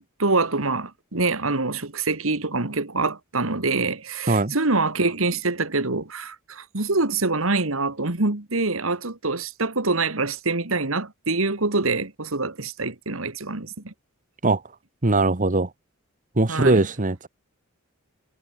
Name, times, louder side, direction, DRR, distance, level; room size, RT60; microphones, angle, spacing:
voice 1, 0.0-13.9 16.5-16.8, right 3 dB, 70° right, 2.3 m, -25 dB
voice 2, 15.0-15.7 16.4-17.3, right 2 dB, 40° right, 1.4 m, -20 dB
head